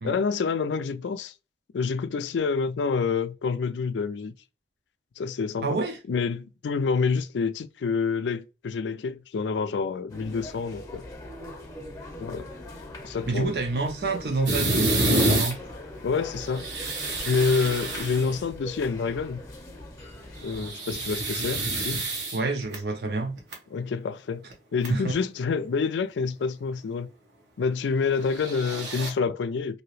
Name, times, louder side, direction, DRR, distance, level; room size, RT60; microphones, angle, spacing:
voice 1, 0.0-1.3 1.7-4.3 5.2-5.8 6.1-11.0 12.2-12.5 13.0-13.5 16.0-16.7 17.2-19.4 20.4-22.0 23.7-24.4 24.7-27.1 27.6-29.8, left 5 dB, 85° left, 0.4 m, -27 dB
voice 2, 5.6-6.0 13.3-15.6 22.3-23.3 24.9-25.0, right 3 dB, 65° right, 0.6 m, -28 dB
sound 1, 10.1-20.7, left 1 dB, 20° left, 0.8 m, -41 dB
sound 2, 14.5-15.5 16.4-18.4 20.4-22.8 23.4-23.5 24.5-24.6 24.8-24.9 28.2-29.1, right 2 dB, 85° right, 1.3 m, -27 dB
2.9 x 2.7 x 3.0 m
head